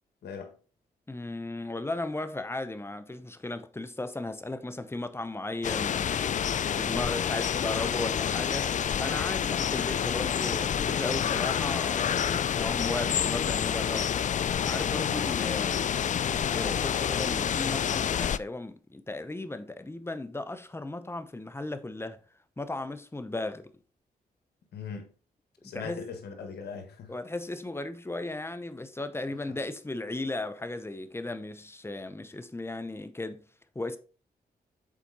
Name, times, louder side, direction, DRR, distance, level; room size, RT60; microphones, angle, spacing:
voice 1, 0.2-0.6 15.0-15.4 24.7-25.1 25.6-27.1, left 6 dB, 85° left, 1.6 m, -40 dB
voice 2, 1.1-6.3 6.7-22.2 22.6-23.7 25.6-26.0 27.1-33.4 33.7-34.0, left 2 dB, 15° left, 0.9 m, -36 dB
sound 1, 5.6-18.4, left 8 dB, 50° left, 0.4 m, -28 dB
7.4 x 4.3 x 4.1 m
cardioid pair, 65°, 16 cm